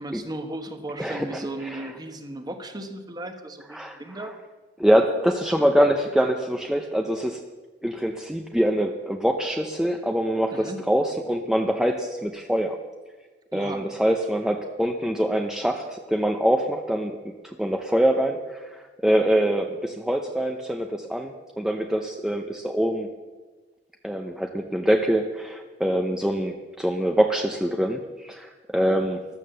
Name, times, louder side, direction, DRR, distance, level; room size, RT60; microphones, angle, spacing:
voice 1, 0.0-4.3 10.5-10.8 13.5-13.9, right 1 dB, 25° right, 7 dB, 1.3 m, -36 dB
voice 2, 1.0-1.9 3.7-4.0 4.8-7.4 7.8-12.8 13.5-17.2 17.4-23.1 24.0-29.2, equal, 5° right, 3 dB, 0.7 m, -24 dB
14.0 x 12.0 x 6.9 m, 1.3 s
head